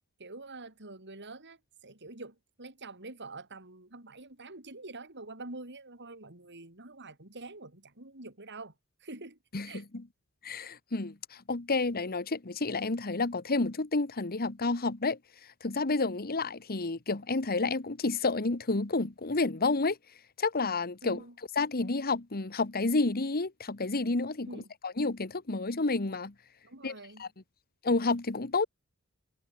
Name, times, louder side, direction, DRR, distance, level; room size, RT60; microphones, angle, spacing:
voice 1, 0.2-8.7 9.0-9.4 9.6-9.9 21.0-21.4 24.5-24.7 26.6-27.2, right 2 dB, 55° right, 5.6 m, -46 dB
voice 2, 10.4-15.2 15.6-20.0 20.4-21.2 21.6-26.3 26.8-26.9 27.2-27.3 27.8-28.7, left 3 dB, 45° left, 1.4 m, -30 dB
head